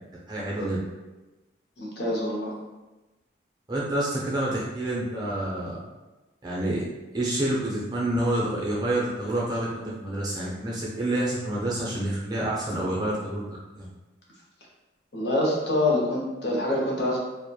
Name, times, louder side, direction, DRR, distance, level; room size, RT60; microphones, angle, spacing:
voice 1, 0.3-0.8 3.7-5.8 6.4-6.8 7.1-13.4 13.8-13.9, right 1 dB, 20° right, -5 dB, 0.5 m, -28 dB
voice 2, 1.8-2.5 15.1-17.2, left 1 dB, 60° left, -4 dB, 0.6 m, -25 dB
2.9 x 2.0 x 2.2 m, 1.1 s
head